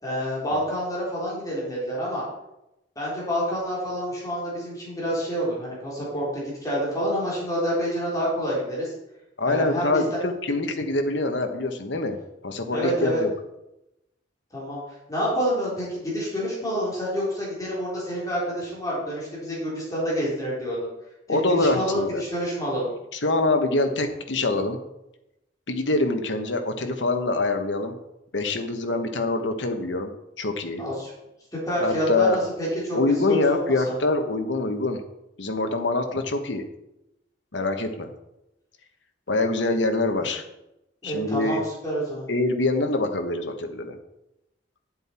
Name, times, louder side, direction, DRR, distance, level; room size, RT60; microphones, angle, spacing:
voice 1, 0.0-2.2 3.0-8.9 9.4-10.2 12.7-13.2 14.5-14.8 15.1-20.9 21.3-22.9 30.8-31.1 31.5-33.9 40.2-40.3 41.0-42.3, equal, 20° left, -6 dB, 3.8 m, -28 dB
voice 2, 9.4-12.2 12.4-13.3 21.3-22.2 23.1-24.8 25.7-27.9 28.3-30.1 30.4-30.8 31.8-32.4 32.9-35.0 35.4-36.6 37.5-38.1 39.3-40.4 41.0-41.6 42.3-43.9, left 2 dB, 70° left, 5 dB, 1.3 m, -25 dB
10.5 x 7.7 x 4.5 m, 0.88 s
head